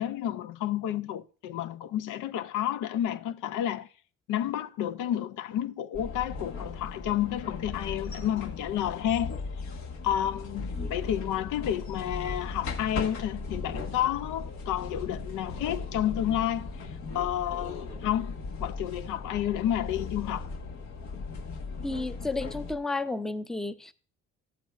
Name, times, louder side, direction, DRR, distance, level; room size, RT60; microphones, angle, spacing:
voice 1, 0.0-3.9 4.3-9.4 10.0-20.5, left 11 dB, 85° left, 0.6 m, -30 dB
sound 1, 5.9-22.7, left 4 dB, 70° left, 1.4 m, -37 dB
voice 2, 21.8-23.9, left 3 dB, ahead, 0.5 m, -32 dB
13.0 x 7.8 x 2.4 m
cardioid pair, 90°, 30 cm